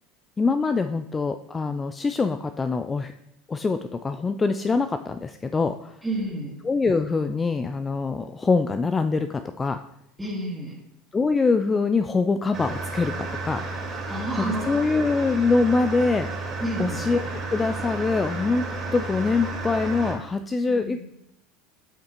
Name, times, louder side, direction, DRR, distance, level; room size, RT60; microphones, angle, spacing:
voice 1, 0.4-3.1 3.5-6.0 6.6-9.8 11.1-13.8 14.4-17.2 17.5-18.7 18.9-21.0, left 4 dB, 20° left, 9 dB, 0.3 m, -24 dB
voice 2, 6.0-6.6 10.2-10.8 14.1-14.9 16.6-17.0 20.7-21.0, right 1 dB, 10° right, -2 dB, 2.1 m, -30 dB
sound 1, 12.5-20.1, right 3 dB, 35° right, 2.3 m, -32 dB
8.4 x 5.4 x 3.0 m, 0.81 s
hypercardioid pair, 90°, 0 cm